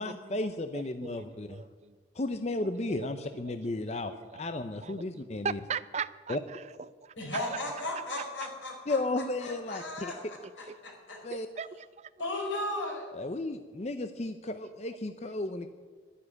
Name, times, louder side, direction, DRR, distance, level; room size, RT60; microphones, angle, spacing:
voice 1, 0.0-1.6 2.2-4.1 4.4-5.6 6.3-6.4 8.9-10.1 10.6-10.7 11.2-11.5 13.1-15.7, left 2 dB, 35° left, 9 dB, 0.6 m, -34 dB
voice 2, 0.7-1.9 2.6-3.1 4.1-4.4 4.8-6.6 7.0-7.1 7.5-7.6 11.3-12.1, right 6 dB, 35° right, 17 dB, 0.4 m, -39 dB
voice 3, 7.2-10.4 10.8-11.2 12.2-13.1, left 1 dB, 85° left, 0 dB, 4.5 m, -36 dB
11.5 x 9.8 x 9.6 m, 1.5 s
head